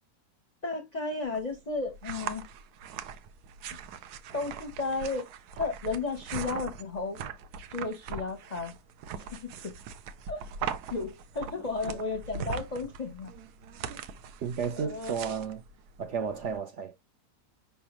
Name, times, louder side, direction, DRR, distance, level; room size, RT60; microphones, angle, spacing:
voice 1, 0.6-2.4 4.3-5.3 5.6-7.2 7.7-8.7 9.3-9.7 10.3-10.4 10.9-13.3 14.8-15.2, left 3 dB, 40° left, 0.6 m, -33 dB
sound 1, 1.2-16.6, right 6 dB, 85° right, 1.1 m, -41 dB
voice 2, 14.4-15.6 16.0-16.9, right 6 dB, 65° right, 0.8 m, -32 dB
5.3 x 3.4 x 2.9 m
omnidirectional pair, 1.6 m